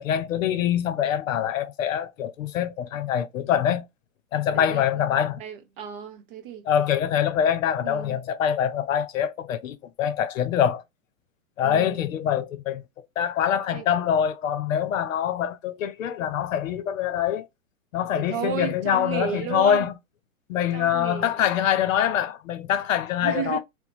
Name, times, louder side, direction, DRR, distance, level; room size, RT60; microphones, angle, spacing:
voice 1, 0.0-3.8 4.3-5.4 6.7-10.8 11.6-12.8 13.2-17.5 17.9-19.9 20.5-23.6, left 9 dB, 70° left, 0.7 m, -24 dB
voice 2, 4.5-6.7 7.8-8.2 11.6-12.0 13.7-13.9 18.1-19.9 20.7-21.5 23.2-23.6, right 8 dB, 40° right, 0.8 m, -33 dB
2.8 x 2.2 x 4.0 m
hypercardioid pair, 130°, 41 cm